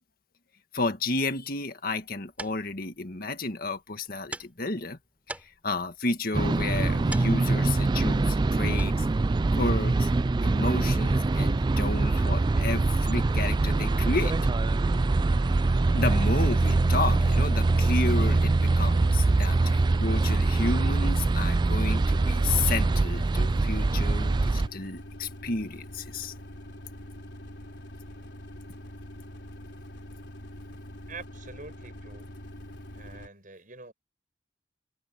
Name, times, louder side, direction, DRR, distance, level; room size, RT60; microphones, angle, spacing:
voice 1, 0.7-5.0 5.3-9.1 9.5-10.1 10.4-14.4 15.9-26.3, left 3 dB, 55° left, 2.0 m, -32 dB
sound 1, 1.9-11.2, right 1 dB, 10° right, 4.7 m, -47 dB
sound 2, 6.3-24.7, right 3 dB, 25° right, 0.3 m, -24 dB
sound 3, 13.6-33.3, equal, 80° left, 3.9 m, -44 dB
voice 2, 31.1-32.3 32.9-33.9, right 4 dB, 50° right, 7.5 m, -45 dB
head